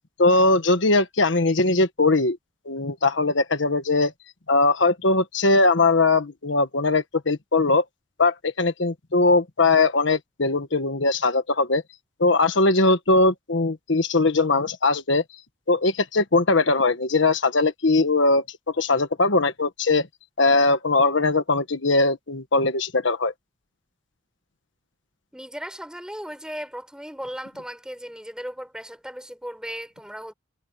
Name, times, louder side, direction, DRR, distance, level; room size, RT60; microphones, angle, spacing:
voice 1, 0.2-2.4 2.6-4.1 4.5-7.8 8.2-11.8 12.2-15.2 15.7-18.4 18.7-20.1 20.4-23.3, left 3 dB, 80° left, 1.4 m, -20 dB
voice 2, 25.3-30.3, equal, 5° right, 6.7 m, -36 dB
head